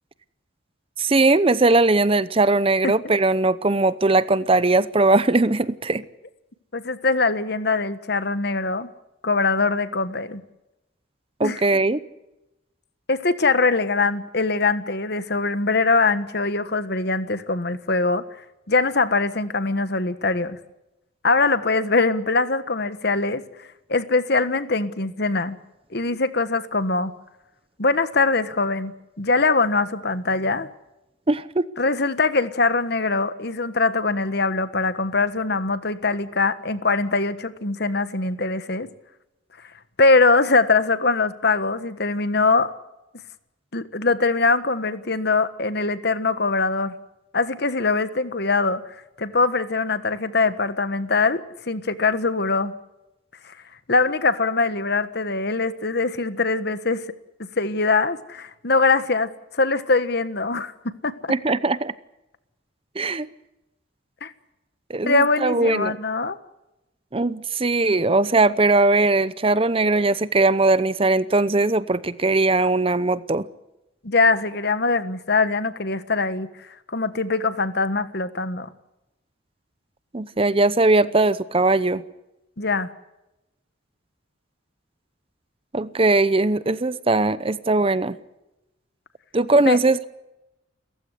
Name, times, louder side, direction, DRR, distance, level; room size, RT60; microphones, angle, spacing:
voice 1, 1.0-6.0 11.4-12.0 31.3-31.7 61.3-61.9 63.0-63.3 64.9-66.0 67.1-73.5 80.1-82.0 85.7-88.2 89.3-90.0, right 2 dB, 30° right, 0.7 m, -20 dB
voice 2, 6.7-8.9 9.2-10.4 11.4-11.6 13.1-18.2 18.7-20.6 21.2-25.6 25.9-27.1 27.8-28.9 29.2-30.7 31.8-38.9 40.0-42.7 43.7-46.9 47.3-48.8 49.2-52.7 53.4-53.5 53.9-57.0 57.6-61.3 64.2-64.3 65.0-66.4 74.0-76.5 76.9-78.7 82.6-82.9 89.7-89.8, left 3 dB, 55° left, 1.4 m, -22 dB
29.0 x 15.5 x 8.1 m
head